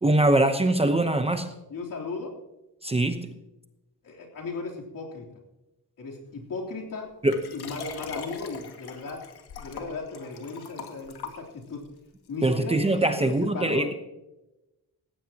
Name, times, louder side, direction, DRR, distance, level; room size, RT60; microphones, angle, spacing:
voice 1, 0.0-1.5 2.8-3.3 7.2-7.4 12.4-13.9, right 2 dB, 15° right, 7 dB, 0.9 m, -23 dB
voice 2, 1.7-2.3 4.0-5.3 6.0-7.1 7.5-9.2 9.6-11.8 12.3-13.9, left 3 dB, 55° left, -1 dB, 3.5 m, -36 dB
Liquid, 7.3-11.9 12.5-12.6, left 6 dB, 80° left, 2.1 m, -41 dB
18.5 x 15.5 x 2.9 m, 0.97 s
wide cardioid pair, 135°, 38 cm